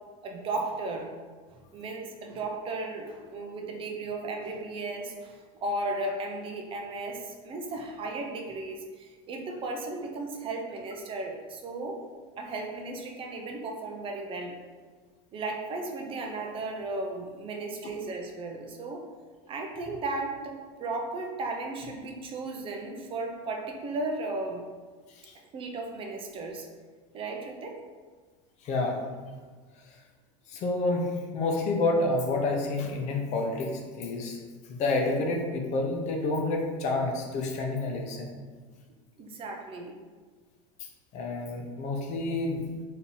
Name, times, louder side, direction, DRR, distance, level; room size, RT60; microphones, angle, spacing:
voice 1, 0.2-1.1 1.7-12.0 12.4-14.6 15.3-19.0 19.5-24.6 25.5-26.7 27.1-27.8 39.2-40.0, right 2 dB, 35° right, 2 dB, 0.5 m, -35 dB
voice 2, 28.6-29.0 30.5-34.4 34.7-38.3 41.1-42.7, left 2 dB, 45° left, 1 dB, 0.7 m, -29 dB
3.7 x 2.8 x 2.9 m, 1.5 s
supercardioid pair, 120°, 16 cm